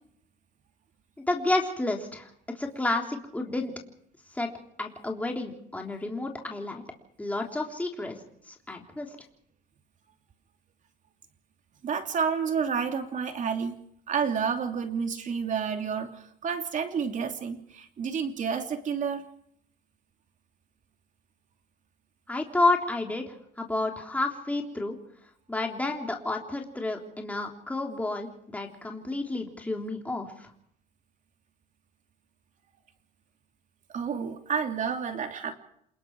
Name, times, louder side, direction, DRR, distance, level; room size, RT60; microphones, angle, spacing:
voice 1, 1.3-2.3 2.5-3.7 4.3-4.5 4.8-6.8 7.2-8.2 8.5-9.1 22.3-25.0 25.5-30.5, left 2 dB, 10° left, 1 dB, 3.5 m, -30 dB
voice 2, 11.8-13.8 14.1-19.2 33.9-35.5, right 6 dB, 50° right, 5 dB, 3.0 m, -30 dB
28.0 x 21.0 x 4.8 m, 0.70 s
cardioid pair, 110°, 17 cm